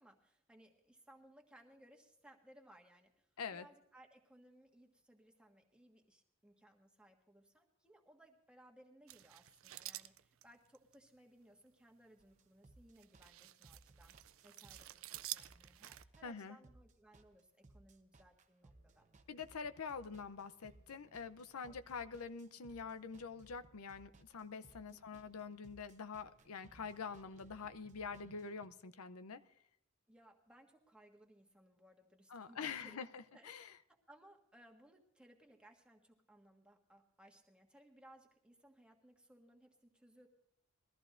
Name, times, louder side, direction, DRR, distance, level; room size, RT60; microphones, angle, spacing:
voice 1, 0.0-19.1 21.6-21.8 24.9-25.2 30.1-33.0 33.3-33.5 33.9-40.3, right 1 dB, 5° right, 1 dB, 1.5 m, -64 dB
sound 1, 9.1-10.9 12.0-12.3 13.0-16.0, right 15 dB, 65° right, 0.4 m, -50 dB
sound 2, 12.2-28.7, right 2 dB, 35° right, 0.8 m, -64 dB
voice 2, 16.2-16.6 19.3-29.4 32.3-33.7, left 5 dB, 85° left, 12 dB, 0.6 m, -46 dB
21.5 x 14.0 x 2.5 m, 0.74 s
head